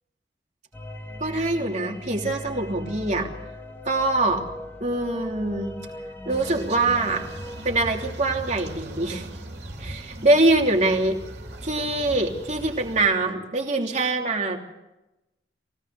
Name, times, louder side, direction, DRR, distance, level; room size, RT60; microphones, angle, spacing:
sound 1, 0.7-7.7, left 1 dB, 10° left, 2.1 m, -38 dB
voice 1, 1.2-3.3 3.8-4.4 4.8-5.7 6.2-7.2 7.6-9.3 9.8-11.2 11.6-14.6, right 2 dB, 40° right, 1 dB, 3.1 m, -23 dB
sound 2, 6.3-13.1, right 1 dB, 60° right, 3.4 m, -39 dB
23.5 x 18.0 x 6.9 m, 0.95 s
head